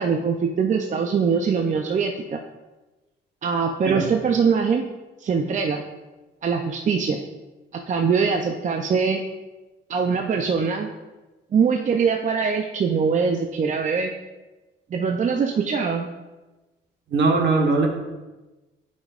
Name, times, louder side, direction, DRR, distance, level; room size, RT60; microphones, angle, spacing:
voice 1, 0.0-2.4 3.4-4.8 5.2-5.8 6.4-7.2 7.7-9.2 9.9-10.9 11.5-14.1 14.9-16.1, right 5 dB, 40° right, 3 dB, 0.5 m, -22 dB
voice 2, 17.1-17.9, right 3 dB, 60° right, 2 dB, 1.2 m, -20 dB
8.8 x 5.2 x 2.4 m, 1.1 s
cardioid pair, 90°, 20 cm